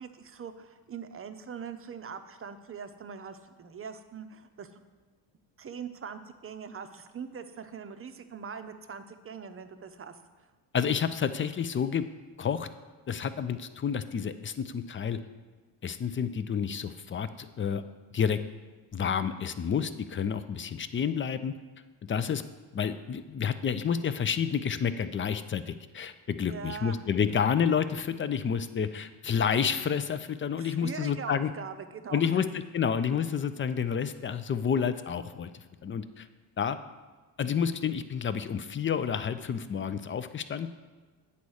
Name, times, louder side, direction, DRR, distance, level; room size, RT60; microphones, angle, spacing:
voice 1, 0.0-4.8 5.6-10.2 26.5-27.1 30.6-32.4, right 6 dB, 30° right, 9 dB, 0.7 m, -42 dB
voice 2, 10.7-12.0 12.4-12.7 13.1-15.2 15.8-17.8 18.1-18.4 18.9-21.5 22.0-22.4 22.7-31.5 32.1-36.3 36.6-36.8 37.4-40.7, left 7 dB, 25° left, 12 dB, 0.5 m, -29 dB
8.4 x 4.2 x 6.3 m, 1.3 s
supercardioid pair, 75°, 45 cm